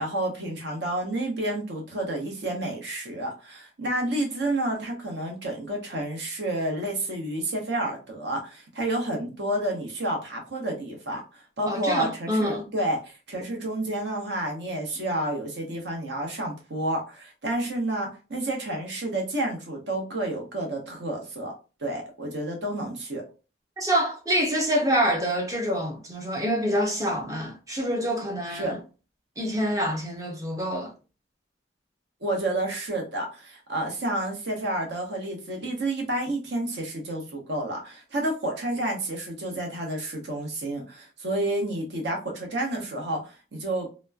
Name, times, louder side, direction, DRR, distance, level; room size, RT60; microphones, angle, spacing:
voice 1, 0.0-21.5 21.8-23.2 28.5-28.7 32.2-43.9, right 1 dB, 65° right, 0.9 m, -30 dB
voice 2, 11.7-12.7 23.8-28.8 29.4-30.9, equal, 20° right, 0.5 m, -26 dB
3.0 x 2.1 x 2.3 m
head